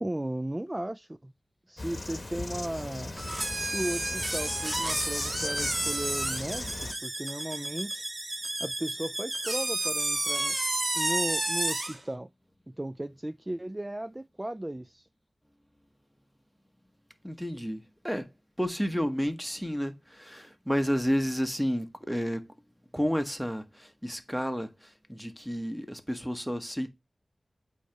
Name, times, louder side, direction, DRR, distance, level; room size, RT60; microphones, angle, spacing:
voice 1, 0.0-1.3 1.7-3.1 3.6-8.0 8.6-10.6 10.9-12.3 12.8-15.0, right 1 dB, 20° right, 0.3 m, -35 dB
Insect, 1.8-6.9, left 2 dB, 45° left, 1.0 m, -38 dB
sound 1, 3.2-12.0, right 1 dB, 40° right, 1.3 m, -31 dB
voice 2, 17.2-18.3 18.6-22.4 22.9-26.9, equal, ahead, 1.1 m, -31 dB
8.3 x 2.9 x 4.5 m
cardioid pair, 45°, 0 cm